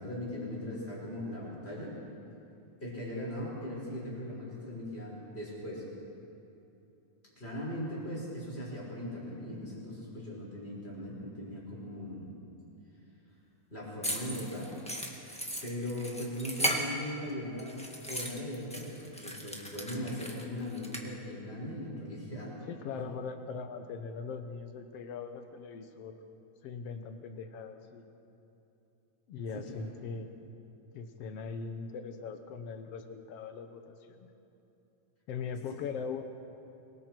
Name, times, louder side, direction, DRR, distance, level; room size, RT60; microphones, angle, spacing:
voice 1, 0.0-2.0 2.8-5.8 7.4-12.3 13.7-14.8 15.6-17.7 18.1-22.6 22.9-23.1 29.5-29.9, left 1 dB, 20° left, -4 dB, 5.7 m, -39 dB
sound 1, 14.0-17.3 17.6-21.0, right 1 dB, 5° left, 1.0 m, -36 dB
voice 2, 22.7-26.3 26.6-28.1 29.3-30.3 30.9-34.3 35.3-36.2, left 5 dB, 60° left, 7 dB, 2.0 m, -40 dB
25.0 x 22.5 x 4.6 m, 3.0 s
omnidirectional pair, 3.4 m